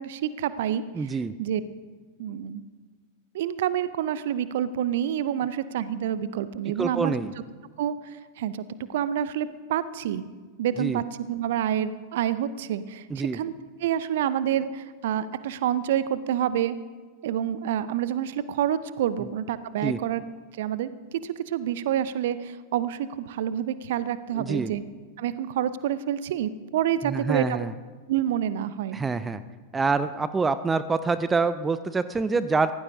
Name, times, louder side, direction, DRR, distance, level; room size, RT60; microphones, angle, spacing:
voice 1, 0.0-0.8 1.4-1.6 2.2-2.6 3.3-7.1 7.8-10.3 10.6-13.5 13.8-16.8 17.2-20.2 20.6-24.8 25.2-27.7 28.1-29.0, right 10 dB, 55° right, 15 dB, 0.7 m, -28 dB
voice 2, 0.9-1.3 6.8-7.3 10.8-11.0 13.1-13.4 19.8-20.0 24.4-24.7 27.0-27.7 28.9-29.4 29.7-32.7, right 4 dB, 15° right, 14 dB, 0.5 m, -26 dB
24.0 x 17.0 x 2.7 m, 1.4 s
figure-of-eight pair, 90°, 0 cm